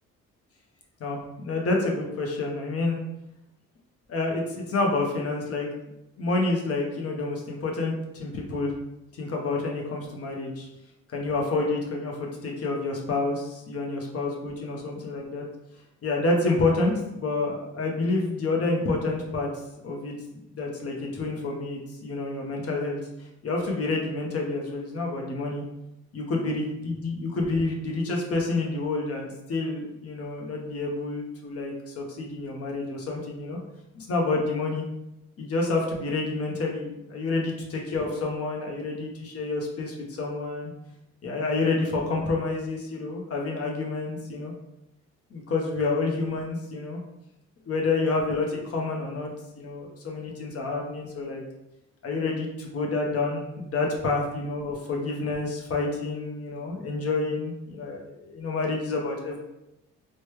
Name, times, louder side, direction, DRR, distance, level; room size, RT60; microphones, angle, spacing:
voice 1, 1.0-3.0 4.1-5.7 6.2-8.7 9.1-10.7 11.1-15.4 16.0-19.5 19.8-20.1 20.5-23.0 23.4-25.6 26.1-33.6 33.9-34.8 35.4-40.7 41.2-44.5 45.3-47.0 47.7-49.3 49.6-51.4 52.0-59.4, left 3 dB, 50° left, 0 dB, 0.7 m, -28 dB
3.0 x 2.1 x 3.1 m, 0.89 s
cardioid pair, 90°, 30 cm